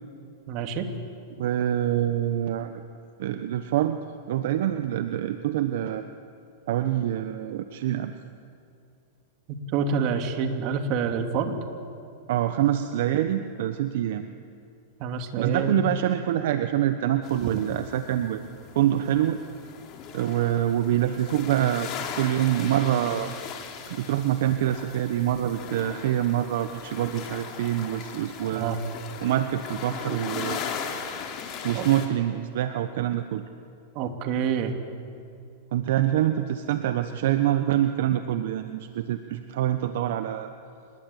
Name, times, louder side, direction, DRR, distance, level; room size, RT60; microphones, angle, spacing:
voice 1, 0.5-0.9 9.5-11.6 15.0-15.8 17.4-17.5 28.5-28.8 31.7-31.9 33.9-34.7, right 6 dB, 45° right, 6 dB, 2.8 m, -27 dB
voice 2, 1.4-2.8 3.2-4.0 4.3-6.0 6.7-8.1 12.3-14.2 15.4-18.4 18.7-19.4 20.1-23.4 23.9-28.7 29.2-30.7 31.6-33.4 35.7-40.5, right 12 dB, 70° right, 9 dB, 1.1 m, -25 dB
sound 1, 17.2-32.1, left 7 dB, 40° left, 3.8 m, -38 dB
26.5 x 21.0 x 8.5 m, 2.5 s
hypercardioid pair, 130°, 0 cm